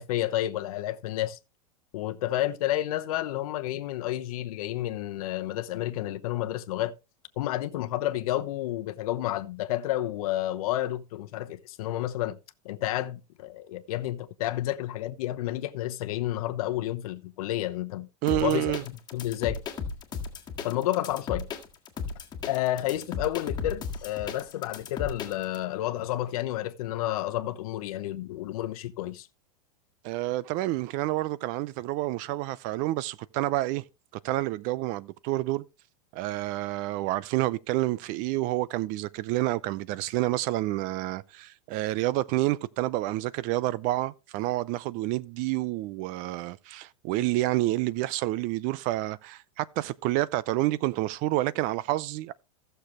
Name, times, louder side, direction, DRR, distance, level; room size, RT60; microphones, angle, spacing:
voice 1, 0.0-1.4 1.9-6.9 7.4-12.4 12.6-18.7 19.1-19.6 20.6-21.5 22.5-29.3, left 14 dB, 70° left, 1.0 m, -30 dB
voice 2, 18.2-18.8 30.0-33.8 34.2-35.6 36.1-52.3, right 17 dB, 45° right, 0.6 m, -29 dB
sound 1, 18.3-25.6, left 5 dB, 20° left, 1.8 m, -35 dB
15.5 x 6.8 x 3.1 m
supercardioid pair, 135°, 20 cm